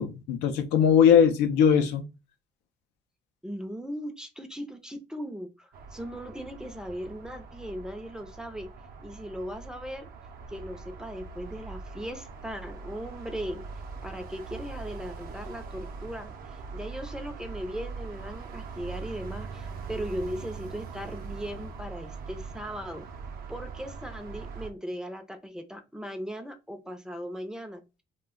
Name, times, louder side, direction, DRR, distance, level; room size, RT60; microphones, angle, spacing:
voice 1, 0.0-2.0, left 7 dB, 90° left, 0.5 m, -20 dB
voice 2, 3.4-8.7 9.0-10.1 10.5-13.6 14.0-23.1 23.5-28.0, equal, 5° right, 0.4 m, -38 dB
sound 1, 5.7-24.7, right 4 dB, 60° right, 0.6 m, -41 dB
2.3 x 2.1 x 3.5 m
cardioid pair, 110°, 17 cm